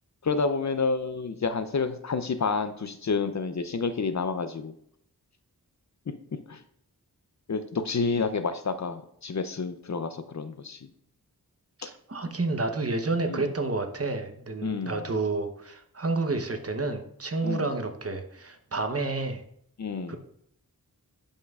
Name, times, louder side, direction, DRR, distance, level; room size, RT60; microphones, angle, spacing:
voice 1, 0.2-4.7 6.5-6.6 7.5-10.8 13.3-13.5 14.6-15.0 17.4-17.6 19.8-20.2, left 4 dB, 45° left, 10 dB, 0.5 m, -29 dB
voice 2, 11.8-19.4 20.1-20.2, right 3 dB, 40° right, 6 dB, 0.9 m, -30 dB
11.5 x 5.5 x 2.4 m, 0.70 s
wide cardioid pair, 80°, 38 cm